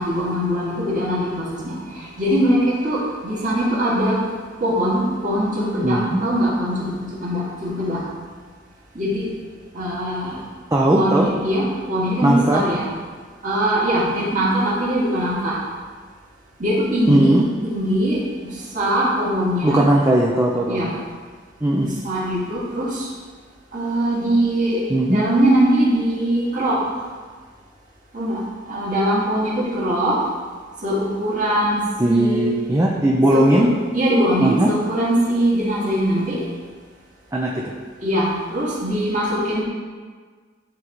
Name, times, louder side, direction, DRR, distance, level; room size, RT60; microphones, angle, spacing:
voice 1, 0.0-4.2 4.6-8.0 8.9-9.3 9.7-10.4 10.9-12.9 13.4-15.6 16.6-17.3 17.6-18.2 18.7-19.8 20.7-21.0 21.7-23.1 23.7-26.8 28.1-28.4 28.7-30.2 30.8-32.5 33.3-33.6 33.9-36.4 38.0-39.6, equal, 40° right, -7 dB, 2.0 m, -21 dB
voice 2, 5.8-6.3 10.7-11.3 12.2-12.7 17.1-17.5 19.6-20.9 21.6-21.9 24.9-25.2 32.0-33.7 34.4-34.7 37.3-37.7, right 1 dB, 15° right, -3 dB, 0.5 m, -18 dB
11.0 x 3.8 x 3.1 m, 1.5 s
head